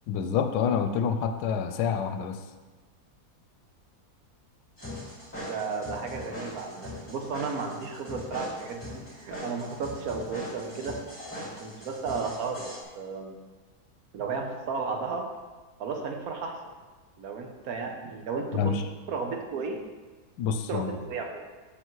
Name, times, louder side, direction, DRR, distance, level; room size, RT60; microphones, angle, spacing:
voice 1, 0.1-2.4 18.5-18.8 20.4-21.0, left 7 dB, 85° left, 8 dB, 1.1 m, -27 dB
sound 1, 4.8-12.8, left 1 dB, 10° left, 1.9 m, -40 dB
voice 2, 5.3-11.0 11.3-13.4 14.1-15.3 15.8-16.6 17.2-18.7 19.1-19.8 20.7-21.4, right 4 dB, 65° right, 3 dB, 1.3 m, -34 dB
7.8 x 6.2 x 3.1 m, 1.3 s
omnidirectional pair, 1.7 m